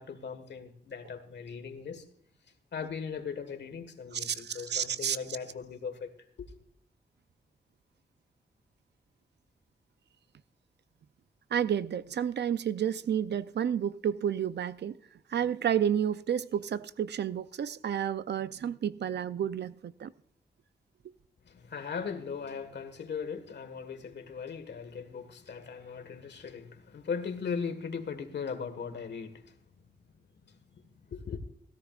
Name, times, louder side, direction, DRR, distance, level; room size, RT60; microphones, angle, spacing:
voice 1, 0.0-2.0 2.7-6.1 6.4-6.5 21.4-29.6 30.4-31.4, left 6 dB, 80° left, 1.6 m, -39 dB
voice 2, 4.1-5.2 11.5-15.0 15.3-20.1, right 9 dB, 75° right, 0.5 m, -31 dB
16.5 x 14.0 x 2.4 m
wide cardioid pair, 125°, 18 cm